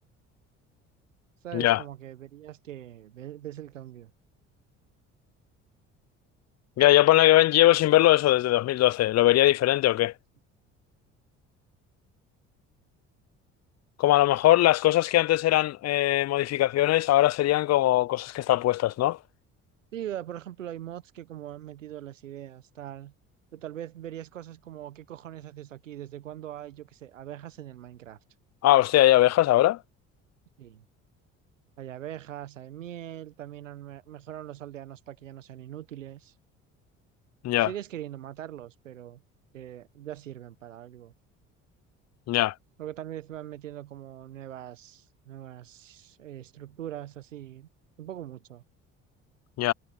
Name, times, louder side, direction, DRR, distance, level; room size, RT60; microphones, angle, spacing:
voice 1, 1.4-4.1 19.9-23.1 23.5-28.2 30.6-30.8 31.8-36.3 37.6-39.2 39.5-41.1 42.8-47.7 48.0-48.6, right 12 dB, 90° right, 1.3 m, -41 dB
voice 2, 6.8-10.1 14.0-19.2 28.6-29.8 37.4-37.7 42.3-42.5 49.6-49.7, left 15 dB, 45° left, 0.6 m, -21 dB
hypercardioid pair, 55°, 37 cm